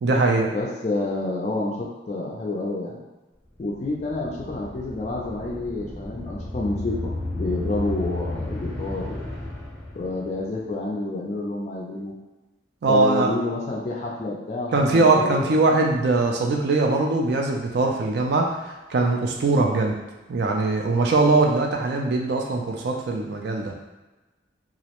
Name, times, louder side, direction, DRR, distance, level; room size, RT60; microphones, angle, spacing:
voice 1, 0.0-0.5 12.8-13.3 14.7-19.9 20.3-23.7, right 3 dB, 60° right, 1 dB, 0.4 m, -21 dB
voice 2, 0.5-3.0 3.6-9.2 9.9-12.1 12.9-15.5, left 2 dB, 35° left, -3 dB, 0.3 m, -29 dB
sound 1, 3.6-10.5, left 2 dB, ahead, 0.6 m, -33 dB
2.4 x 2.0 x 2.9 m, 1.1 s
head